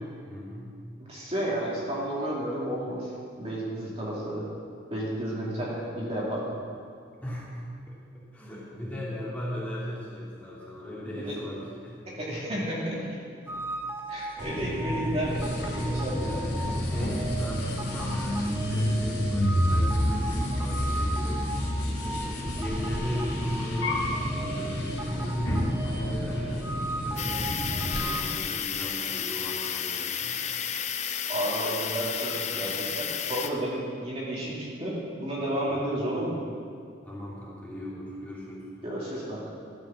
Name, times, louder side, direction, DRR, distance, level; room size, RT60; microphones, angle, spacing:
voice 1, 0.3-0.7 7.2-12.0 12.3-12.4 13.4-13.7 16.2-26.8 27.0-30.4 35.7-36.1 37.0-38.7, left 1 dB, 10° left, -8 dB, 2.4 m, -37 dB
voice 2, 1.1-4.4 4.9-6.6 10.9-11.4 12.1-13.2 14.1-16.3 31.3-36.4 38.8-39.4, right 1 dB, 30° right, -6 dB, 2.6 m, -32 dB
sound 1, 13.5-28.2, right 2 dB, 10° right, 0.6 m, -38 dB
sound 2, 14.4-28.0, equal, 55° left, 3.0 m, -29 dB
sound 3, 27.2-33.5, left 8 dB, 35° left, 0.5 m, -32 dB
13.0 x 7.0 x 7.4 m, 2.2 s
head